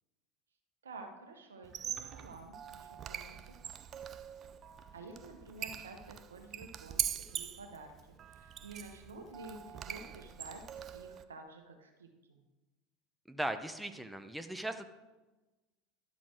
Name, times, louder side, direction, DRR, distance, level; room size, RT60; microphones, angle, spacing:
voice 1, 0.8-3.6 4.9-12.4, right 3 dB, 90° right, 4 dB, 1.1 m, -51 dB
Squeak, 1.6-11.2, right 9 dB, 40° right, 0.5 m, -43 dB
voice 2, 13.3-14.9, right 1 dB, 5° right, 7 dB, 0.7 m, -38 dB
12.0 x 4.2 x 4.5 m, 1.1 s
hypercardioid pair, 80°, 0 cm